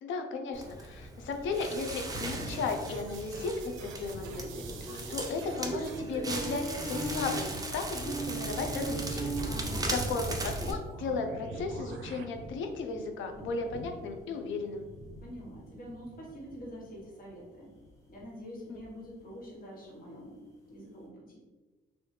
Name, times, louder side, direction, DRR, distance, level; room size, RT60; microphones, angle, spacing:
voice 1, 0.0-9.4 9.9-14.9 18.7-18.8, left 4 dB, 75° left, 5 dB, 0.5 m, -35 dB
Crackle, 0.5-10.7, right 2 dB, 20° right, 0.6 m, -36 dB
sound 1, 1.3-21.0, equal, 15° left, 1.1 m, -50 dB
sound 2, 2.2-6.2 6.5-7.4 8.5-8.9 9.3-12.2, right 5 dB, 80° right, 0.4 m, -46 dB
voice 2, 9.5-10.0 15.2-17.7 18.1-20.4 20.7-21.4, equal, 45° left, -5 dB, 1.4 m, -46 dB
3.1 x 2.6 x 3.2 m, 1.2 s
cardioid pair, 90°, 20 cm